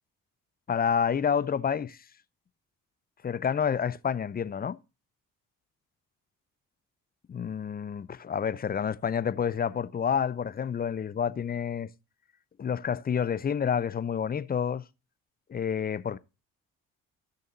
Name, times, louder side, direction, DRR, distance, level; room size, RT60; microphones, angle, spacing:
voice 1, 0.7-2.0 3.2-4.8 7.3-11.9 12.6-14.8 15.5-16.2, left 7 dB, 25° left, 0.5 m, -29 dB
15.5 x 6.6 x 2.5 m
hypercardioid pair, 50°, 40 cm